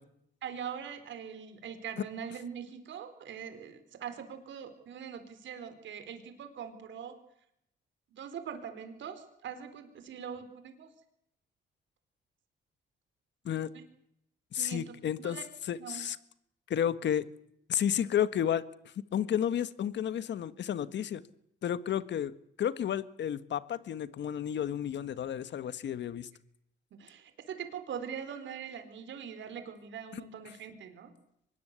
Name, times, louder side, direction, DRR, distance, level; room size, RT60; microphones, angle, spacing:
voice 1, 0.4-7.2 8.1-10.9 13.7-13.8 14.6-15.4 15.8-16.0 27.0-31.1, right 8 dB, 70° right, 9 dB, 4.4 m, -42 dB
voice 2, 14.5-15.4 15.7-16.2 16.7-17.2 17.7-18.6 19.1-21.2 21.6-22.3 22.6-26.3 30.1-30.2, left 9 dB, 65° left, 14 dB, 1.6 m, -31 dB
24.5 x 21.5 x 8.3 m, 0.74 s
cardioid pair, 90°, 20 cm